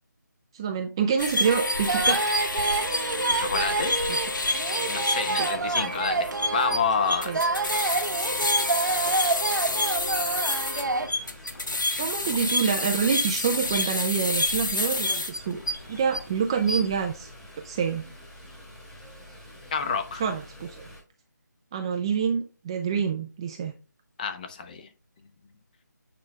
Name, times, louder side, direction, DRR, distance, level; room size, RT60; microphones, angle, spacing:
voice 1, 0.5-2.2 4.1-4.2 5.4-5.5 7.3-7.4 12.0-15.6 15.9-17.3 17.6-18.0 20.2-20.8 21.7-23.7, right 6 dB, 15° right, 4 dB, 0.4 m, -27 dB
sound 1, 1.2-16.2 16.6-17.0, left 2 dB, 80° left, 1.5 m, -28 dB
sound 2, 1.4-11.1, right 3 dB, 75° right, 1.1 m, -28 dB
sound 3, 1.7-21.0, left 1 dB, 5° left, 1.6 m, -47 dB
voice 2, 3.3-4.0 4.9-7.5 10.7-10.8 19.7-20.2 24.2-24.9, left 5 dB, 25° left, 8 dB, 0.9 m, -29 dB
8.6 x 5.0 x 3.2 m, 0.31 s
figure-of-eight pair, 165°, 10 cm